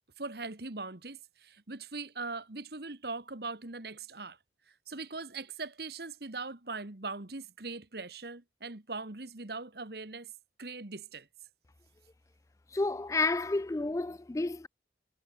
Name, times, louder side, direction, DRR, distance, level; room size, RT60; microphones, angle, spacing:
voice 1, 0.2-4.4 4.7-10.3 10.6-11.3, right 3 dB, 60° right, 1.6 m, -41 dB
voice 2, 12.7-14.7, left 3 dB, 15° left, 0.3 m, -30 dB
head